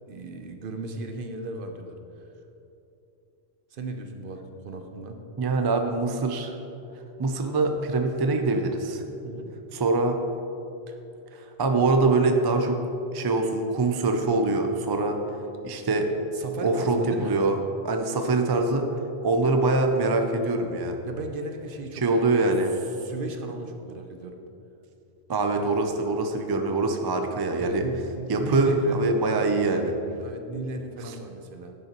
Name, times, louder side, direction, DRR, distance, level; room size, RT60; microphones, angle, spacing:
voice 1, 0.1-2.0 2.2-2.3 3.7-5.2 9.2-9.5 10.9-11.0 16.3-17.4 20.5-20.7 21.1-22.5 22.8-24.4 27.6-29.0 30.2-31.7, right 2 dB, 60° right, 5 dB, 0.8 m, -36 dB
voice 2, 5.4-6.5 7.2-9.0 9.7-10.2 11.3-12.8 13.1-15.2 15.6-16.1 16.6-17.6 17.8-18.9 19.2-21.0 21.9-22.7 25.3-27.8 28.3-29.9, right 3 dB, 40° right, 5 dB, 0.3 m, -24 dB
10.5 x 6.6 x 2.9 m, 2.8 s
omnidirectional pair, 1.1 m